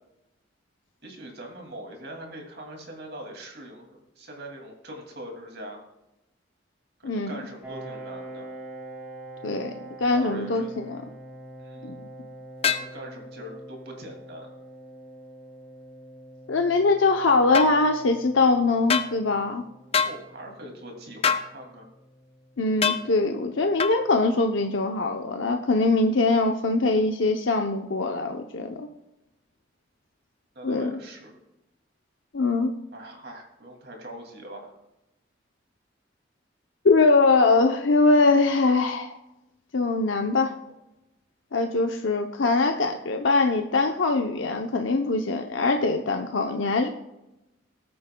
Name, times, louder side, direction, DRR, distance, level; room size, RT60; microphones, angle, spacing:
voice 1, 1.0-3.9 4.2-5.8 7.0-8.5 10.1-10.8 11.6-11.9 12.6-14.5 19.9-21.9 30.5-31.3 32.9-34.7, right 1 dB, 55° right, 2 dB, 2.4 m, -42 dB
voice 2, 7.0-7.4 9.4-9.7 10.0-11.0 11.8-12.1 16.5-19.6 22.6-28.9 30.6-30.9 32.3-32.7 36.8-39.1 39.7-40.5 41.5-46.9, left 3 dB, 85° left, 4 dB, 0.7 m, -22 dB
Piano, 7.6-23.0, right 1 dB, 10° right, 2.0 m, -45 dB
sound 1, 12.6-12.9 17.5-17.7 18.9-19.1 19.9-20.2 21.2-21.5 22.8-23.0 23.8-24.0, left 6 dB, 30° left, 0.6 m, -23 dB
20.0 x 8.6 x 2.3 m, 0.93 s
head